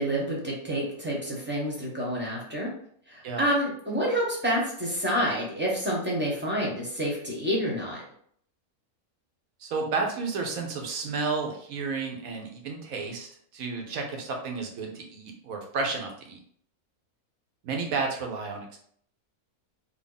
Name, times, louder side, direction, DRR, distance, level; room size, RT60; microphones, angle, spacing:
voice 1, 0.0-2.7 3.1-8.0, equal, 10° right, -4 dB, 0.8 m, -28 dB
voice 2, 9.6-13.3 13.5-16.4 17.6-18.8, right 4 dB, 75° right, 2 dB, 1.2 m, -32 dB
3.5 x 2.2 x 3.8 m, 0.62 s
omnidirectional pair, 1.5 m